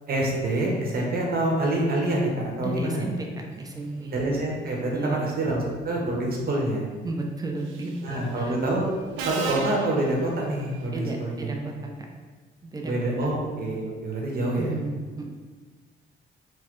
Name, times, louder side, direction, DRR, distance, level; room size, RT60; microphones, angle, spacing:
voice 1, 0.1-2.3 2.6-3.1 4.1-6.9 8.0-8.9 9.2-11.5 12.8-14.8, right 1 dB, 50° right, -2 dB, 0.9 m, -26 dB
voice 2, 2.6-4.1 4.9-5.3 7.0-8.6 10.9-11.9 12.6-12.9 13.2-13.4 14.6-15.3, right 2 dB, 20° right, 1 dB, 0.5 m, -33 dB
Subway metro underground, 7.7-8.0 9.2-10.9, right 4 dB, 85° right, 0.4 m, -34 dB
4.0 x 2.1 x 3.1 m, 1.4 s
cardioid pair, 90°, 20 cm